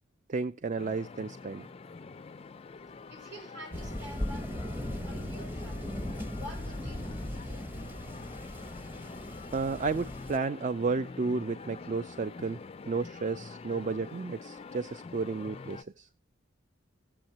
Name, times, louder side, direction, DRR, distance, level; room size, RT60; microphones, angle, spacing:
voice 1, 0.3-1.7 9.5-12.6 12.9-16.1, right 4 dB, 40° right, 14 dB, 0.4 m, -32 dB
sound 1, 0.8-15.8, left 4 dB, 30° left, 0.4 m, -46 dB
voice 2, 3.1-5.9 6.4-7.7, equal, 60° right, 3 dB, 4.8 m, -48 dB
Thunder, 3.7-10.4, left 1 dB, 10° right, 0.8 m, -38 dB
16.5 x 7.6 x 2.8 m, 0.38 s
head